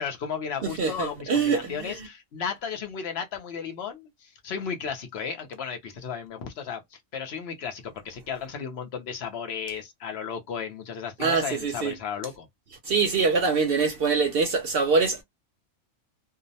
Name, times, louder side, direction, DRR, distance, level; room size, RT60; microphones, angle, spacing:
voice 1, 0.0-12.5, left 7 dB, 60° left, 0.8 m, -34 dB
voice 2, 0.6-2.0 11.2-11.9 12.8-15.2, right 4 dB, 60° right, 0.6 m, -24 dB
2.6 x 2.0 x 2.7 m
omnidirectional pair, 1.4 m